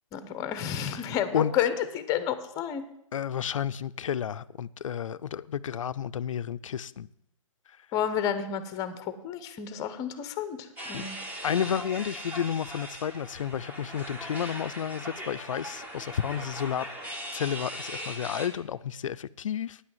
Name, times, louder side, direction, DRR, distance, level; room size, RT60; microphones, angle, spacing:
voice 1, 0.1-2.9 7.9-11.2, left 9 dB, 20° left, 0.8 m, -30 dB
voice 2, 0.9-1.5 3.1-7.1 10.9-11.1 11.4-16.9 17.3-19.8, left 8 dB, 70° left, 0.5 m, -31 dB
sound 1, 10.8-18.5, equal, 10° right, 1.2 m, -39 dB
9.7 x 6.1 x 7.7 m
hypercardioid pair, 145°, 17 cm